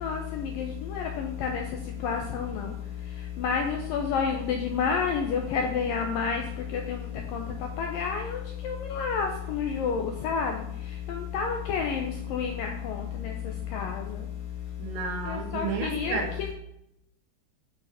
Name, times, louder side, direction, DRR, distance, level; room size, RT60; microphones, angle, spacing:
voice 1, 0.0-1.6 2.0-2.7 3.4-6.4 6.7-7.1 7.3-7.4 7.8-8.4 8.6-10.5 11.1-13.0 13.2-13.3 13.7-14.0 15.5-16.5, left 6 dB, 80° left, 2 dB, 2.0 m, -29 dB
voice 2, 14.8-16.3, right 6 dB, 85° right, 3 dB, 3.7 m, -32 dB
8.8 x 6.3 x 5.7 m, 0.79 s
omnidirectional pair, 5.0 m